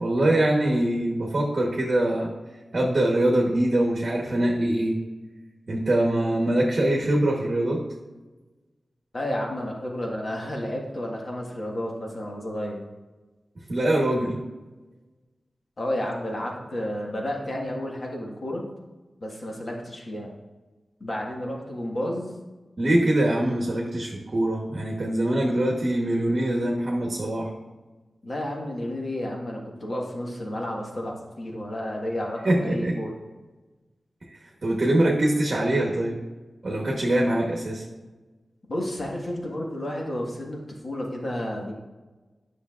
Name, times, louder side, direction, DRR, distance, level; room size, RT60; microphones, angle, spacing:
voice 1, 0.0-2.3 2.7-5.0 5.7-7.8 13.7-14.4 22.8-27.5 32.4-33.0 34.3-36.2 36.6-37.8, right 1 dB, 45° right, -2 dB, 1.1 m, -23 dB
voice 2, 9.1-12.8 15.8-18.6 19.2-20.3 21.0-22.3 28.2-33.1 38.7-41.7, left 1 dB, 45° left, -1 dB, 1.5 m, -31 dB
9.8 x 6.3 x 2.4 m, 1.2 s
wide cardioid pair, 125°, 0 cm